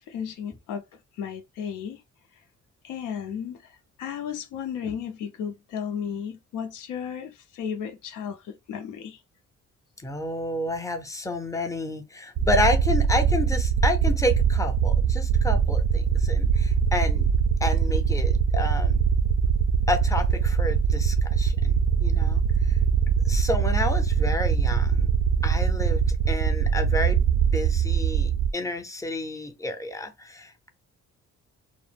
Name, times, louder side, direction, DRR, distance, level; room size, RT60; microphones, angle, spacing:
voice 1, 0.1-0.8 1.2-2.0 2.8-9.2, left 8 dB, 85° left, 0.6 m, -34 dB
voice 2, 10.0-17.3 17.6-19.0 19.9-22.4 22.7-22.8 23.3-25.1 25.4-27.2 27.5-30.7, left 2 dB, 10° left, 0.5 m, -30 dB
sound 1, 12.4-28.5, right 7 dB, 50° right, 0.4 m, -22 dB
2.1 x 2.0 x 3.2 m
cardioid pair, 90°, 30 cm